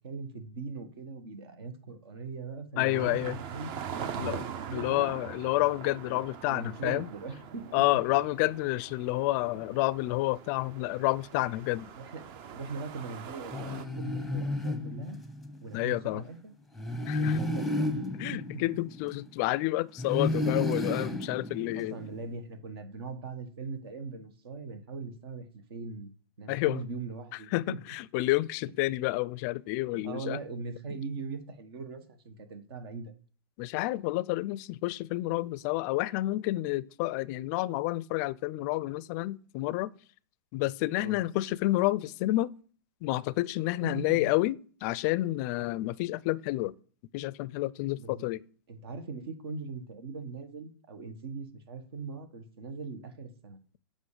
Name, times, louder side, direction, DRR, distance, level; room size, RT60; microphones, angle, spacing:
voice 1, 0.0-5.1 6.4-7.8 12.0-15.2 15.6-16.5 17.1-18.4 21.7-25.4 25.7-26.1 26.4-27.9 29.9-33.1 41.0-41.2 43.8-44.3 48.0-48.3 48.7-53.6, right 4 dB, 70° right, 1.5 m, -40 dB
voice 2, 2.8-3.4 4.2-4.4 4.7-7.1 7.7-11.9 15.7-16.2 17.0-17.4 18.2-22.0 26.5-26.9 27.5-30.4 33.6-39.9 40.5-42.5 43.0-46.7 47.1-48.4, left 18 dB, 45° left, 0.4 m, -29 dB
sound 1, 2.9-13.8, right 8 dB, 40° right, 0.7 m, -42 dB
sound 2, 13.5-15.6 16.8-19.5 20.0-22.2, left 2 dB, ahead, 0.8 m, -32 dB
8.3 x 5.2 x 5.0 m
hypercardioid pair, 120°, 13 cm